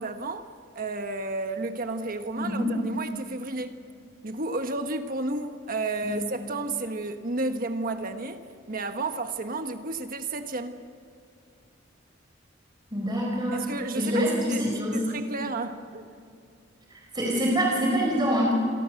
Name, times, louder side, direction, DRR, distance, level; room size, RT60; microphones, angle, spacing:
voice 1, 0.0-3.8 4.2-10.8 13.5-16.1, right 2 dB, 45° right, 1.3 m, -32 dB
voice 2, 2.4-2.7 6.0-6.2 12.9-13.6 13.9-15.0 17.1-18.5, equal, 20° right, 4.5 m, -25 dB
28.5 x 23.5 x 6.5 m
head